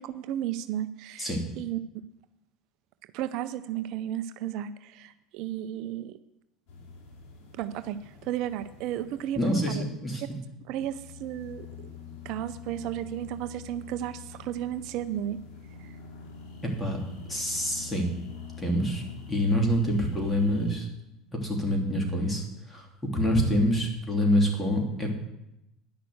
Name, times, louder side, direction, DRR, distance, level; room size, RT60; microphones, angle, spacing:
voice 1, 0.0-1.3 1.6-1.8 3.1-6.2 7.6-9.8 10.7-11.7 12.2-15.4 15.8-15.9, right 11 dB, 65° right, 12 dB, 0.5 m, -33 dB
sound 1, 6.7-10.0 10.6-20.8, left 6 dB, 65° left, 2.8 m, -46 dB
voice 2, 9.4-10.2 16.6-17.0 17.3-18.1 18.6-19.0 19.3-20.9 21.3-22.9 23.1-25.1, equal, 15° left, 1 dB, 3.2 m, -26 dB
10.5 x 6.1 x 7.9 m, 0.88 s
hypercardioid pair, 85°, 0 cm